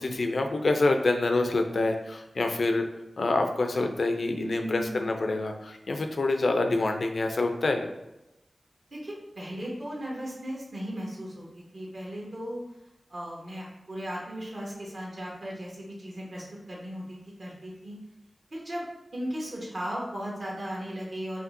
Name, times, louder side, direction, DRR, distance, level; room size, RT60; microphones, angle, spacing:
voice 1, 0.0-2.9 3.2-7.9, left 2 dB, 65° left, 5 dB, 0.4 m, -26 dB
voice 2, 4.2-5.0 8.9-12.6 13.1-18.0 18.5-18.8 19.1-21.4, equal, 60° right, -4 dB, 1.2 m, -37 dB
5.1 x 2.7 x 2.6 m, 0.93 s
wide cardioid pair, 95°, 0 cm